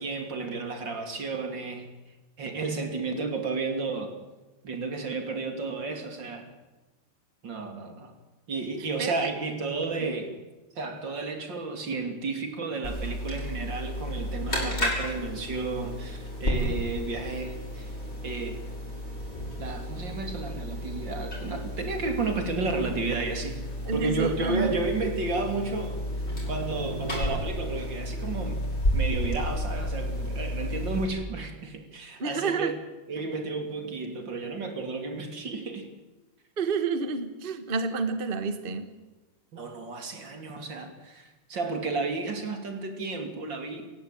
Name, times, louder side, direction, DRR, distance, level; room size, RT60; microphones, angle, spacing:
voice 1, 0.0-1.9 2.4-4.2 4.6-6.5 7.4-8.1 8.5-10.4 10.7-17.9 18.2-18.6 19.6-23.6 23.9-26.1 26.5-28.7 28.9-32.8 33.1-35.9 39.5-43.9, right 3 dB, 65° right, 6 dB, 3.6 m, -32 dB
voice 2, 8.8-9.3 10.0-10.2 23.9-24.7 32.2-32.7 36.6-38.9, right 4 dB, 30° right, 10 dB, 1.5 m, -29 dB
sound 1, 12.8-31.0, equal, 30° left, 7.9 m, -32 dB
28.0 x 15.5 x 9.1 m, 1.1 s
omnidirectional pair, 2.1 m